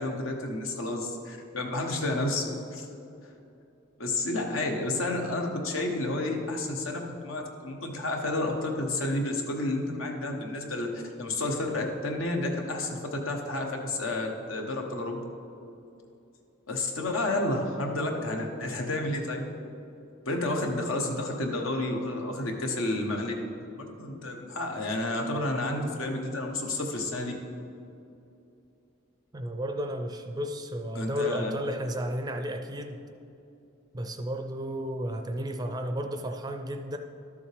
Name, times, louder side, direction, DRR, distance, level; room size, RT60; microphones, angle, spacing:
voice 1, 0.0-2.9 4.0-10.9 11.2-15.2 16.7-19.4 20.2-23.3 23.8-27.3 30.9-31.5, left 2 dB, 80° left, 2 dB, 1.2 m, -30 dB
voice 2, 29.3-33.0 33.9-37.0, equal, 20° right, 6 dB, 0.4 m, -33 dB
12.5 x 7.1 x 3.4 m, 2.7 s
head